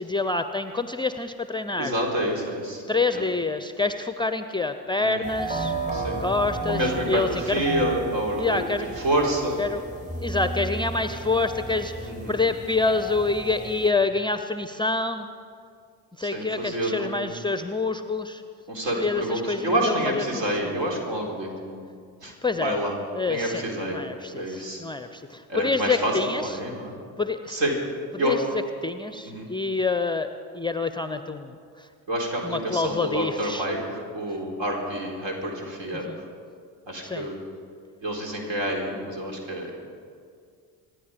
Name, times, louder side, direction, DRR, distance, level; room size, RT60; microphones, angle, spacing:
voice 1, 0.0-1.9 2.9-5.7 6.2-7.6 8.4-9.0 9.6-9.8 10.2-15.3 16.2-18.4 19.0-20.7 22.2-22.8 23.1-26.5 27.2-27.6 28.1-30.3 30.5-31.9 32.4-33.7 36.1-36.2 37.0-37.3, left 3 dB, 10° left, 10 dB, 0.6 m, -27 dB
voice 2, 1.8-2.8 3.1-3.2 5.0-5.3 5.9-6.2 6.7-8.6 9.0-9.7 12.1-12.4 16.2-17.3 18.7-21.8 22.2-22.9 23.3-24.0 24.3-24.8 25.5-27.0 27.5-27.8 28.2-28.4 29.3-29.5 32.1-36.1 36.9-37.4 38.0-39.7, right 1 dB, 60° right, 0 dB, 4.0 m, -28 dB
sound 1, 5.2-13.9, right 3 dB, 15° right, 2.7 m, -33 dB
25.5 x 10.0 x 5.2 m, 2.2 s
figure-of-eight pair, 50°, 50 cm